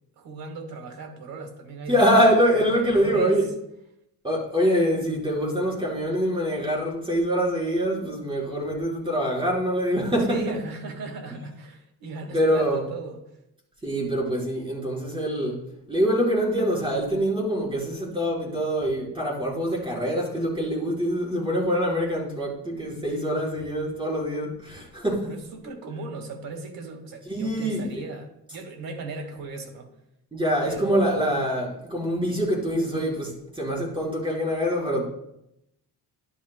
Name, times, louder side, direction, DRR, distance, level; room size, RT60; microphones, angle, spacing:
voice 1, 0.2-2.1 2.7-3.4 10.3-13.2 23.1-23.5 25.3-29.9 30.7-31.4, right 3 dB, 60° right, 4 dB, 1.8 m, -37 dB
voice 2, 1.9-3.5 4.2-10.4 12.3-12.8 13.8-25.3 27.3-28.0 30.3-35.1, equal, 15° right, -4 dB, 4.1 m, -24 dB
11.5 x 11.0 x 2.2 m, 0.82 s
cardioid pair, 120°, 38 cm